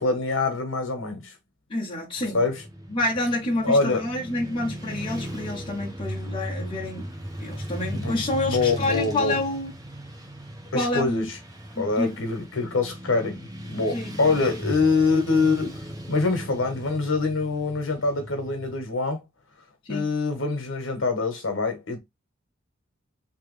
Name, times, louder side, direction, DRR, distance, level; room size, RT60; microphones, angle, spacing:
voice 1, 0.0-1.3 2.3-2.6 3.6-4.0 7.9-8.2 8.5-9.4 10.7-11.4 11.8-19.2 19.9-22.0, left 3 dB, 75° left, 1.3 m, -25 dB
voice 2, 1.7-2.4 2.9-7.1 7.4-9.7 10.7-11.3 11.7-12.1 13.9-14.4 19.8-20.1, left 2 dB, 25° left, 1.3 m, -28 dB
Motorcycle / Traffic noise roadway noise, 2.2-18.8, right 1 dB, 20° right, 1.1 m, -37 dB
3.3 x 3.2 x 3.3 m
head